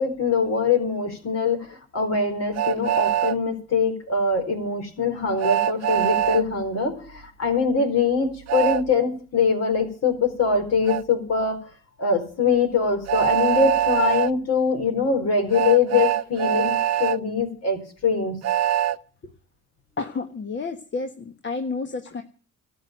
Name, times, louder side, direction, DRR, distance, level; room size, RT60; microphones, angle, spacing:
voice 1, 0.0-11.6 12.0-18.4, left 5 dB, 55° left, 5 dB, 4.4 m, -23 dB
Train, 2.5-3.3 5.4-6.4 8.5-8.8 10.9-11.0 13.1-14.3 15.5-17.2 18.4-19.0, right 12 dB, 55° right, 0.6 m, -23 dB
voice 2, 20.0-22.2, left 4 dB, 40° left, 6 dB, 1.4 m, -30 dB
13.5 x 8.1 x 9.2 m, 0.41 s
cardioid pair, 90°, 30 cm